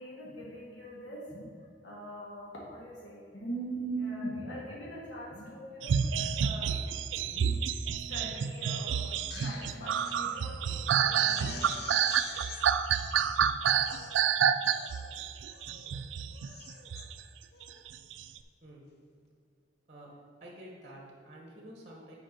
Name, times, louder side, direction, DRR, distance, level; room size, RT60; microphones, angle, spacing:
voice 1, 0.0-6.8 7.3-12.3, right 1 dB, 80° left, -5 dB, 1.5 m, -42 dB
sound 1, 5.8-17.1 17.9-18.2, right 8 dB, 90° right, 0.3 m, -29 dB
Crying sobbing, 9.1-10.2 10.6-10.7 11.1-12.6 13.3-13.4 13.7-14.2 14.7-15.1 15.5-15.9 16.3-17.0 17.5-17.8, left 5 dB, 60° left, 0.6 m, -46 dB
voice 2, 19.9-22.1, right 1 dB, 35° right, -2 dB, 1.1 m, -49 dB
6.3 x 5.2 x 5.2 m, 2.2 s
head